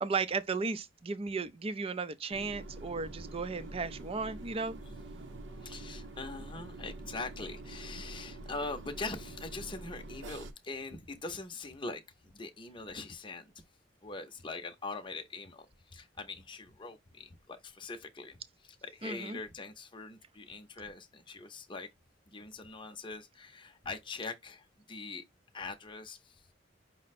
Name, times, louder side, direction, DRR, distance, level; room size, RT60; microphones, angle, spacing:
voice 1, 0.0-4.8 19.0-19.4, right 4 dB, 30° right, 0.4 m, -35 dB
sound 1, 2.3-10.5, right 2 dB, 75° right, 0.7 m, -46 dB
voice 2, 5.6-13.4 14.0-15.7 15.9-18.4 18.8-21.9 22.3-25.2 25.5-26.2, left 3 dB, 25° left, 0.7 m, -42 dB
5.4 x 2.1 x 4.1 m
head